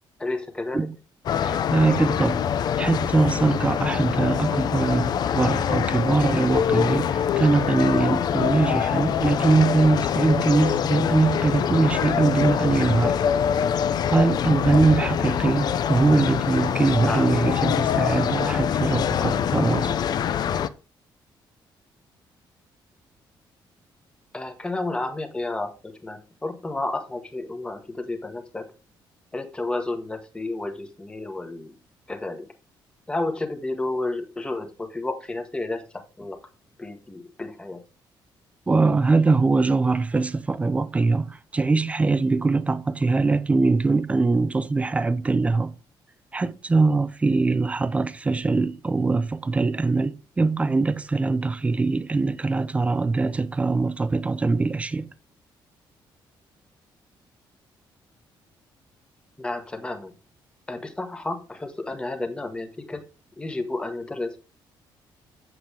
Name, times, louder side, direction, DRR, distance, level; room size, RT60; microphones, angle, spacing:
voice 1, 0.2-0.9 17.1-17.3 24.3-28.7 29.3-31.7 32.1-32.5 33.1-36.4 36.8-37.8 59.4-60.1 60.7-63.0 63.4-64.4, left 2 dB, 10° left, 1.2 m, -31 dB
sound 1, 1.3-20.7, left 8 dB, 55° left, 0.5 m, -24 dB
voice 2, 1.4-2.4 2.8-13.2 14.1-20.0 38.7-45.7 46.3-55.1, right 3 dB, 15° right, 0.5 m, -22 dB
7.8 x 7.7 x 3.4 m
cardioid pair, 150°, 9 cm